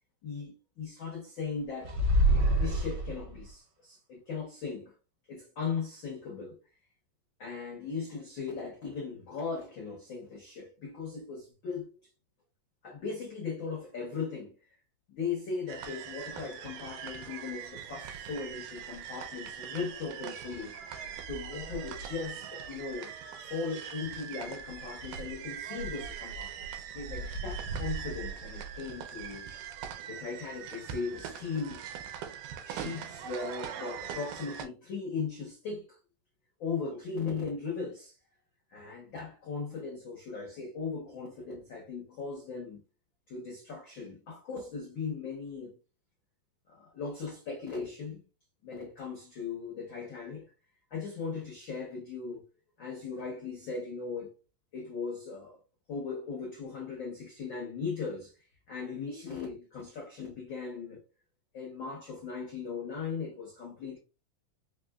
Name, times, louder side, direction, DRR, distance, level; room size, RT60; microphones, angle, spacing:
voice 1, 0.2-2.0 2.6-4.9 5.3-6.6 7.4-12.0 12.8-14.5 15.1-20.7 21.3-23.1 23.4-29.5 30.1-31.8 32.6-36.0 36.6-38.2 38.7-42.8 43.3-45.8 46.7-48.2 48.6-50.4 50.9-52.4 52.8-54.3 54.7-55.6 55.9-58.3 58.7-61.0 61.5-64.0, left 5 dB, 85° left, 1.0 m, -38 dB
sound 1, 1.8-3.5, right 1 dB, 55° right, 1.2 m, -25 dB
sound 2, 15.7-34.7, right 7 dB, 80° right, 2.1 m, -41 dB
5.1 x 2.8 x 2.3 m
omnidirectional pair, 3.8 m